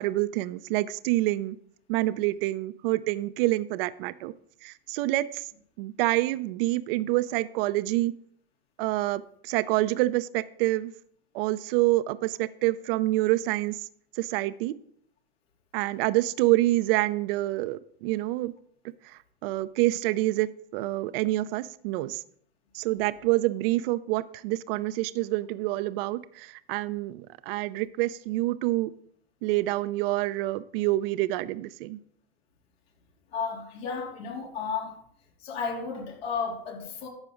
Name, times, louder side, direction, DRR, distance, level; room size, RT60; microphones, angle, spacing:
voice 1, 0.0-1.5 1.9-4.3 4.6-5.2 5.8-8.1 8.8-9.2 9.5-10.9 11.3-13.8 14.2-14.7 15.7-18.5 19.4-20.5 20.7-22.2 22.8-26.2 26.7-28.9 29.4-32.0, right 18 dB, 65° right, 0.6 m, -27 dB
voice 2, 33.3-35.0 35.4-37.1, left 5 dB, 85° left, 3.3 m, -33 dB
12.5 x 8.3 x 3.9 m
hypercardioid pair, 105°, 31 cm